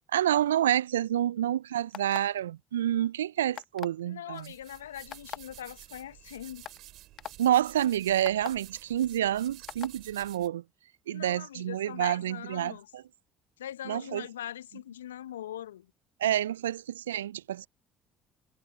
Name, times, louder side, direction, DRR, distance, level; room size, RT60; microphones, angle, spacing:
voice 1, 0.1-4.5 7.4-10.6 11.1-13.0 13.9-14.2 16.2-17.7, right 11 dB, 80° right, 0.3 m, -28 dB
sound 1, 1.9-2.4 3.5-4.0 5.1-5.4 6.1-6.2 6.6-6.8 7.2-7.3 8.2-8.5 9.7-9.9, left 10 dB, 50° left, 0.6 m, -39 dB
voice 2, 4.0-6.7 11.1-12.9 13.6-15.9, left 11 dB, 80° left, 1.1 m, -41 dB
sound 2, 4.3-10.5, right 16 dB, 60° right, 6.0 m, -51 dB
figure-of-eight pair, 55°, 0 cm